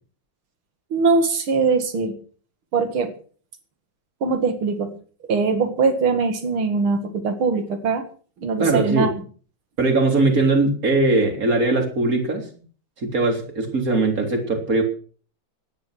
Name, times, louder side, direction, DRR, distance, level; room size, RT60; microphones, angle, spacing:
voice 1, 0.9-2.2 2.7-3.1 4.2-4.9 5.3-8.0 8.4-9.2, right 4 dB, 85° right, 6 dB, 2.8 m, -21 dB
voice 2, 8.6-9.1 9.8-12.5 13.0-14.8, right 3 dB, 40° right, 4 dB, 3.9 m, -20 dB
18.0 x 11.0 x 6.3 m, 0.43 s
omnidirectional pair, 2.2 m